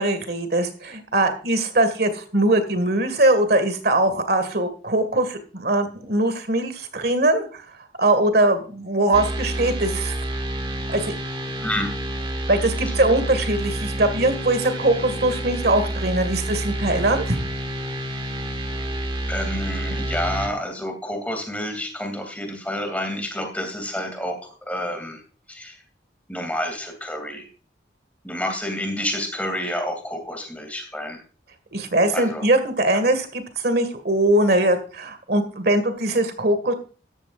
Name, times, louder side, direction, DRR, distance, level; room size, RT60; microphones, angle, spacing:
voice 1, 0.0-7.6 8.0-10.1 10.9-11.1 12.5-17.4 31.7-36.7, right 1 dB, 55° right, 9 dB, 1.9 m, -21 dB
sound 1, 9.1-20.5, right 1 dB, 25° right, 1.4 m, -29 dB
voice 2, 11.6-11.9 19.3-25.2 25.5-25.8 26.3-27.4 28.2-31.2 32.1-32.5, left 1 dB, 10° left, 5 dB, 2.6 m, -29 dB
14.0 x 11.5 x 2.5 m, 0.39 s
head